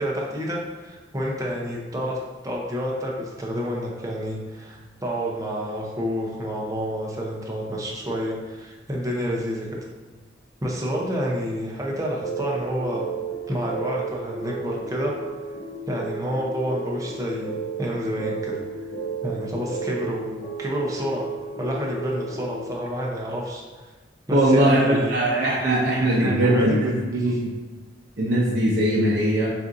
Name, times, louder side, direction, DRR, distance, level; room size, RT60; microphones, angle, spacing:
voice 1, 0.0-2.2 2.4-9.7 10.6-13.1 13.5-15.1 15.9-18.6 19.2-21.3 21.6-23.6 24.3-25.5 26.0-27.4, equal, 20° right, -2 dB, 0.6 m, -29 dB
sound 1, 12.2-22.7, right 4 dB, 75° left, 1.0 m, -33 dB
voice 2, 24.3-27.5 28.2-29.5, right 1 dB, 60° right, -5 dB, 0.6 m, -20 dB
6.7 x 2.5 x 2.6 m, 1.3 s
head